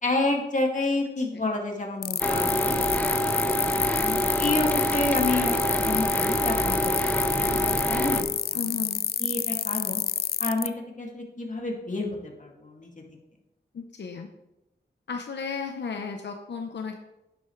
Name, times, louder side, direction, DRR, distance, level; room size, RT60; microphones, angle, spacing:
voice 1, 0.0-2.8 3.9-6.9 7.4-8.7 9.2-10.0 10.4-10.7 11.0-12.9, left 2 dB, 45° left, 0 dB, 2.4 m, -29 dB
voice 2, 1.2-1.5 8.5-9.0 13.7-14.3 15.1-17.0, left 5 dB, 85° left, 4 dB, 0.8 m, -34 dB
sound 1, 2.0-10.7, left 8 dB, 65° left, 0.4 m, -28 dB
sound 2, 2.2-8.2, equal, 10° left, 1.1 m, -26 dB
10.5 x 10.5 x 3.3 m, 0.95 s
wide cardioid pair, 65°, 18 cm